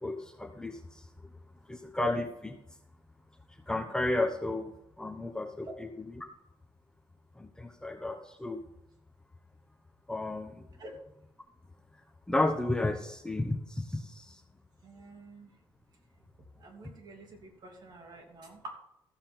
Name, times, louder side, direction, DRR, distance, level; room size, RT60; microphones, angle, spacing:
voice 1, 0.0-1.0 1.7-2.6 3.7-6.3 7.4-8.6 10.1-10.7 12.3-14.4, left 2 dB, 10° left, 5 dB, 1.0 m, -33 dB
voice 2, 14.8-15.5 16.6-18.8, right 2 dB, 50° right, 1 dB, 3.0 m, -48 dB
14.5 x 7.5 x 4.4 m, 0.80 s
cardioid pair, 115°, 9 cm